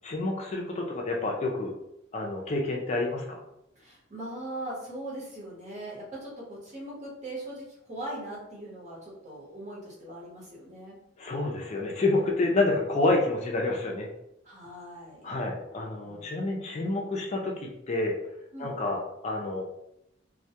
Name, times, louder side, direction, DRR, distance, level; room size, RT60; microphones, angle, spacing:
voice 1, 0.0-1.7 2.1-3.4 11.2-14.1 15.2-18.2 18.6-19.6, left 2 dB, 35° left, 0 dB, 0.4 m, -28 dB
voice 2, 3.8-11.0 14.4-15.3 16.0-16.4 18.5-18.8, right 1 dB, 40° right, -5 dB, 0.9 m, -40 dB
2.2 x 2.1 x 2.7 m, 0.81 s
head